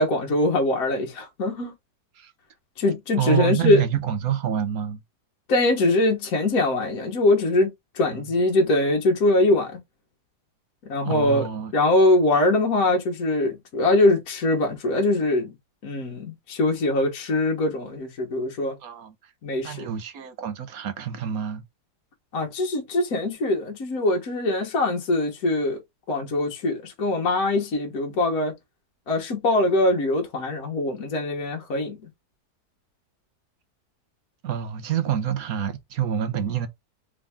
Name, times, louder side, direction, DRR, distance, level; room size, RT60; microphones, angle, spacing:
voice 1, 0.0-1.7 2.8-3.8 5.5-9.7 10.9-11.4 11.7-15.5 15.8-18.8 19.4-19.9 22.3-25.8 26.1-28.5 29.1-32.0, left 2 dB, 60° left, 1.6 m, -22 dB
voice 2, 3.2-5.0 8.1-8.3 11.0-11.7 18.8-19.1 19.6-21.6 34.4-36.7, right 9 dB, 65° right, 1.2 m, -27 dB
3.7 x 3.6 x 3.4 m
omnidirectional pair, 1.7 m